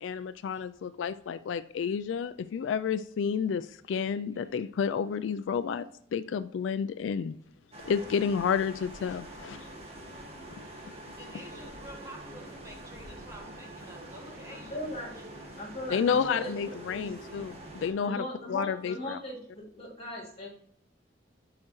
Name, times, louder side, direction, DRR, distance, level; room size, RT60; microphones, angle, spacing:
voice 1, 0.0-5.8 6.1-7.4 7.9-9.6 15.9-18.2 18.5-19.2, left 6 dB, 85° left, 12 dB, 0.3 m, -30 dB
sound 1, 7.7-17.9, right 1 dB, 35° right, 1.6 m, -45 dB
voice 2, 11.2-14.8 15.1-15.5, right 1 dB, 15° right, 0 dB, 1.3 m, -49 dB
voice 3, 14.5-15.1 15.6-17.1 18.0-20.5, left 1 dB, 35° left, -3 dB, 3.2 m, -39 dB
11.5 x 4.8 x 3.1 m, 0.68 s
head